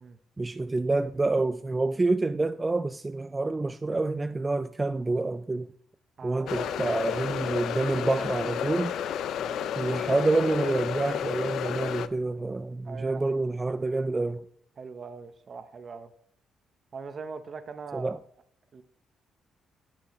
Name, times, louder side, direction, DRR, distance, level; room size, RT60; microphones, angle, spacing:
voice 1, 0.4-5.7 6.2-8.9 9.8-14.4 17.9-18.2, right 3 dB, 20° right, 0.3 m, -28 dB
voice 2, 6.2-6.9 9.4-9.8 12.8-13.2 14.8-16.1 16.9-18.2 18.7-18.8, right 5 dB, 45° right, 0.7 m, -41 dB
sound 1, 6.5-12.1, left 9 dB, 75° left, 0.4 m, -31 dB
10.5 x 7.6 x 3.0 m
cardioid pair, 90°, 0 cm